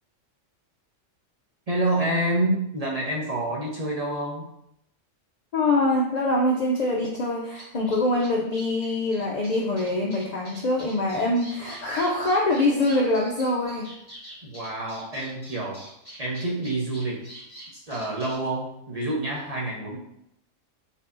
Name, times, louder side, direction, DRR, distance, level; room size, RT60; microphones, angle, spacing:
voice 1, 1.7-4.5 14.4-15.9 16.2-17.3 17.7-20.0, right 1 dB, 40° right, -4 dB, 0.6 m, -28 dB
voice 2, 5.5-13.9, left 2 dB, 85° left, -2 dB, 0.3 m, -24 dB
sound 1, 7.0-7.1 7.5-18.4, right 1 dB, 15° left, 1.3 m, -45 dB
4.5 x 3.5 x 2.5 m, 0.79 s
omnidirectional pair, 1.4 m